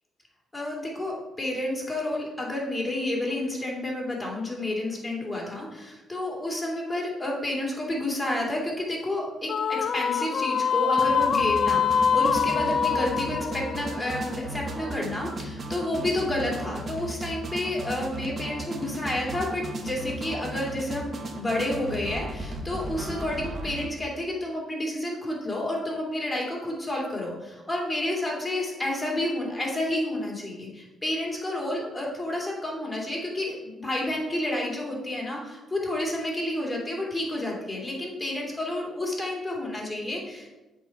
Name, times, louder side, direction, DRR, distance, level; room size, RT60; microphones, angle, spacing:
voice 1, 0.5-40.5, left 1 dB, 10° left, -2 dB, 2.8 m, -30 dB
sound 1, 9.5-14.9, left 6 dB, 50° left, 0.4 m, -25 dB
sound 2, 11.0-23.9, right 1 dB, 45° right, 1.1 m, -36 dB
7.9 x 4.4 x 5.9 m, 1.1 s
cardioid pair, 90°, 0 cm